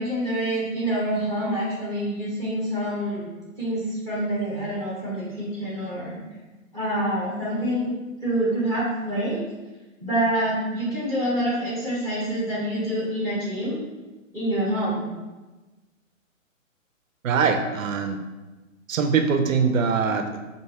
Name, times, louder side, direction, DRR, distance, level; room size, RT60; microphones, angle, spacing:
voice 1, 0.0-3.3 3.6-6.2 6.7-7.9 8.2-9.4 10.0-13.8 14.3-15.0, right 1 dB, 10° left, -7 dB, 0.9 m, -26 dB
voice 2, 17.2-18.2 18.9-20.4, right 5 dB, 75° right, 6 dB, 0.5 m, -22 dB
4.6 x 2.6 x 2.7 m, 1.2 s
hypercardioid pair, 140°, 41 cm